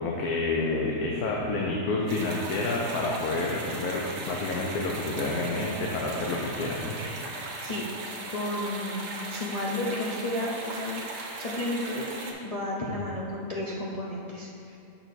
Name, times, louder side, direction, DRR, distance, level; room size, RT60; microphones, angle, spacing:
voice 1, 0.0-7.0 7.5-7.7, left 2 dB, 90° left, -2 dB, 1.2 m, -29 dB
sound 1, 2.1-12.3, right 2 dB, 55° right, 1.1 m, -38 dB
voice 2, 7.4-7.9 8.3-12.1 12.4-14.8, left 1 dB, 50° left, -5 dB, 0.4 m, -32 dB
7.0 x 5.8 x 4.1 m, 2.7 s
omnidirectional pair, 1.5 m